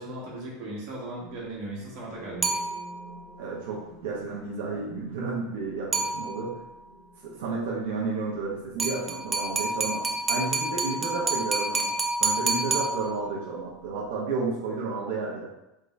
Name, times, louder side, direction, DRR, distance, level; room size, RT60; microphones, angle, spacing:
voice 1, 0.0-2.6, right 1 dB, 55° right, -4 dB, 1.4 m, -37 dB
sound 1, 1.9-9.7, right 1 dB, 75° left, 0.8 m, -51 dB
sound 2, 2.4-3.2 5.9-6.7 8.8-13.5, right 3 dB, 15° right, 0.4 m, -29 dB
voice 2, 3.4-6.6 7.2-10.0 10.3-11.9 12.2-15.5, right 4 dB, 85° right, -4 dB, 0.8 m, -32 dB
3.5 x 2.6 x 3.2 m, 0.92 s
supercardioid pair, 160°, 0 cm